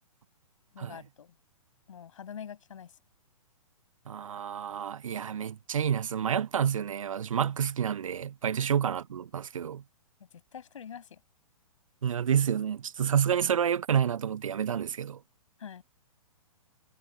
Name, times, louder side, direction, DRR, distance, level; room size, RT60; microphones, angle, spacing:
voice 1, 0.7-1.3 1.9-2.9 10.3-11.2 15.6-15.8, left 8 dB, 60° left, 7.1 m, -45 dB
voice 2, 4.1-9.8 12.0-15.2, right 8 dB, 65° right, 0.7 m, -29 dB
figure-of-eight pair, 115°, 18 cm